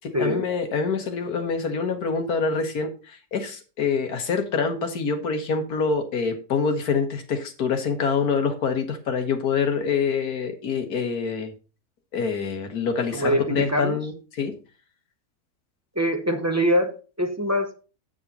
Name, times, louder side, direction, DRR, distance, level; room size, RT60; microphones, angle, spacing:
voice 1, 0.0-11.5 12.1-14.5, left 5 dB, 75° left, 5 dB, 1.8 m, -26 dB
voice 2, 13.1-14.0 15.9-17.8, equal, 15° right, 5 dB, 0.5 m, -24 dB
7.9 x 6.9 x 4.1 m, 0.34 s
omnidirectional pair, 1.7 m